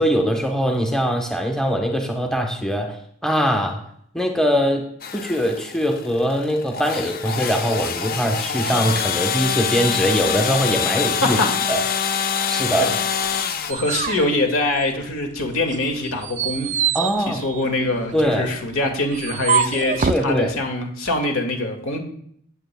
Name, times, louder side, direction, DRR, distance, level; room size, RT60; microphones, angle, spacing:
voice 1, 0.0-3.0 3.2-3.8 4.1-4.9 5.1-11.4 11.7-11.8 12.5-13.0 16.9-17.4 18.1-18.5 20.1-20.5, equal, 5° left, 2 dB, 1.0 m, -22 dB
sound 1, 5.0-13.7, left 7 dB, 45° left, 0.6 m, -25 dB
sound 2, 13.3-15.2 15.7-20.3, right 7 dB, 35° right, 0.3 m, -26 dB
voice 2, 13.7-16.7 17.3-22.0, left 2 dB, 75° left, 3 dB, 2.0 m, -23 dB
16.5 x 8.9 x 2.3 m, 0.66 s
head